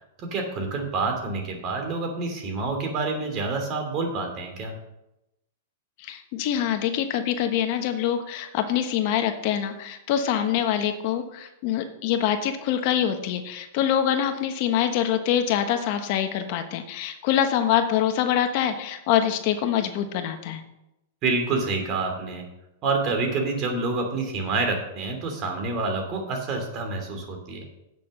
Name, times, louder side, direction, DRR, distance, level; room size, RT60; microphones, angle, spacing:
voice 1, 0.2-4.7 21.2-22.4 22.8-27.7, right 3 dB, 35° right, 4 dB, 2.9 m, -27 dB
voice 2, 6.0-20.6, left 9 dB, 50° left, 7 dB, 1.1 m, -25 dB
8.4 x 6.8 x 6.5 m, 0.89 s
hypercardioid pair, 135°, 0 cm